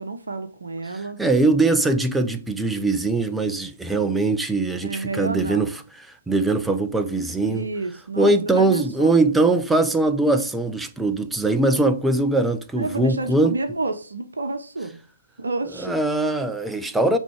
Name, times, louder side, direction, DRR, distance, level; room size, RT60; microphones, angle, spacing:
voice 1, 0.0-1.2 4.8-5.7 7.4-9.2 12.7-15.0 15.4-16.0, right 3 dB, 65° right, 0.9 m, -30 dB
voice 2, 1.2-5.7 6.0-7.7 8.2-13.5 15.8-17.2, right 2 dB, 5° right, 0.5 m, -21 dB
9.0 x 3.6 x 4.9 m
figure-of-eight pair, 130°, 0 cm